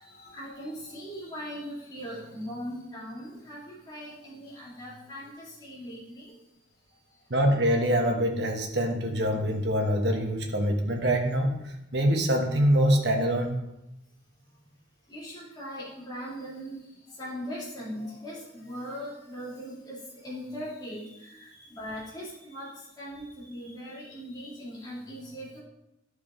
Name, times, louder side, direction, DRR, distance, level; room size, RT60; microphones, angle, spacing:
voice 1, 0.0-6.2 15.1-16.8 17.2-25.6, equal, 20° left, -8 dB, 2.4 m, -40 dB
voice 2, 7.3-13.5, equal, 60° right, 1 dB, 1.2 m, -25 dB
12.0 x 4.8 x 3.7 m, 0.90 s
head